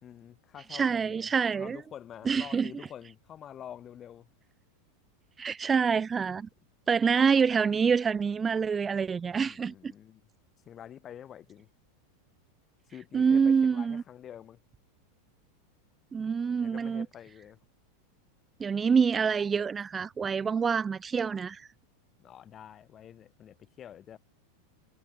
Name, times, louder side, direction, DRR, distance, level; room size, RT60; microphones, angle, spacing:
voice 1, 0.0-4.3 9.4-10.2 10.7-11.7 12.9-14.6 16.6-17.6 22.2-24.2, left 10 dB, 35° left, 3.6 m, -47 dB
voice 2, 0.7-1.8 2.3-2.7 5.4-6.5 6.9-9.9 13.1-14.0 16.1-17.1 18.6-21.7, right 6 dB, 20° right, 0.5 m, -26 dB
hypercardioid pair, 95°, 0 cm